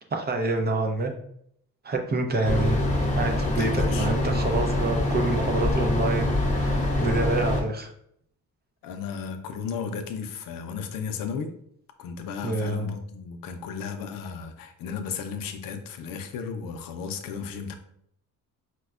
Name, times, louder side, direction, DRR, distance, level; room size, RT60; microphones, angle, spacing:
voice 1, 0.1-1.1 1.8-2.8 3.1-7.9 12.4-12.9, right 2 dB, 30° right, 3 dB, 0.5 m, -27 dB
sound 1, 2.4-7.6, left 1 dB, 20° left, 0.7 m, -25 dB
voice 2, 3.6-4.1 8.8-11.5 12.0-17.7, left 6 dB, 80° left, 7 dB, 0.5 m, -34 dB
4.4 x 2.1 x 2.3 m, 0.69 s
cardioid pair, 105°, 33 cm